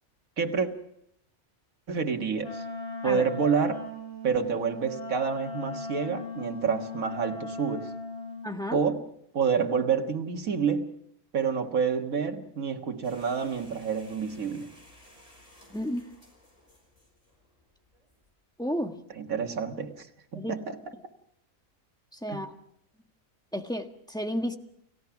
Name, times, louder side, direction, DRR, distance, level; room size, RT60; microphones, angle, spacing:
voice 1, 0.4-0.7 1.9-2.6 3.0-3.8 4.2-7.9 8.7-9.0 9.3-10.9 11.3-14.7 19.2-20.1 20.3-20.8 22.3-22.4, right 6 dB, 85° right, 4 dB, 2.0 m, -28 dB
Wind instrument woodwind instrument, 2.4-8.5, left 2 dB, 55° left, 8.1 m, -38 dB
voice 2, 8.4-8.8 15.7-16.1 18.6-19.0 20.3-20.5 22.1-22.5 23.5-24.6, equal, 5° left, 5 dB, 1.4 m, -32 dB
sound 1, 13.0-18.3, equal, 25° left, 5.6 m, -56 dB
29.5 x 16.0 x 5.9 m, 0.74 s
omnidirectional pair, 1.4 m